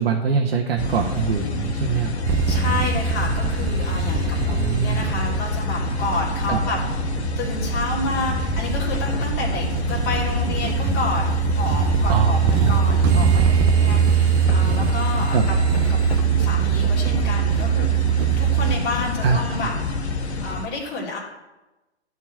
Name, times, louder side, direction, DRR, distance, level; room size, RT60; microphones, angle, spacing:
voice 1, 0.0-2.2 4.5-5.2 6.5-6.6 12.1-12.8 15.3-15.5 19.2-19.4, right 6 dB, 55° right, -1 dB, 1.5 m, -23 dB
sound 1, 0.8-20.7, left 3 dB, 70° left, 1.4 m, -27 dB
sound 2, 2.3-18.8, right 7 dB, 10° right, 0.3 m, -22 dB
voice 2, 2.5-6.8 7.4-15.6 15.9-18.0 18.4-19.7 20.4-21.2, left 3 dB, 35° left, -4 dB, 2.9 m, -30 dB
12.0 x 4.7 x 7.9 m, 1.0 s
figure-of-eight pair, 120°, 34 cm